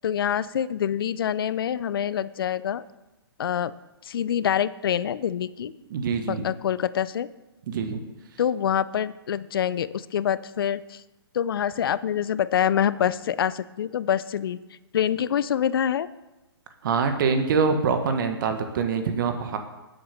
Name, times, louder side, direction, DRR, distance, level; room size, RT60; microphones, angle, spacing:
voice 1, 0.0-2.8 3.4-3.7 4.0-5.7 6.3-7.3 8.4-11.0 11.3-14.6 14.9-16.1, left 9 dB, 60° left, 17 dB, 0.6 m, -26 dB
voice 2, 5.9-6.5 7.7-8.0 16.8-19.6, right 5 dB, 55° right, 6 dB, 1.4 m, -24 dB
10.5 x 8.0 x 6.8 m, 1.0 s
hypercardioid pair, 130°, 13 cm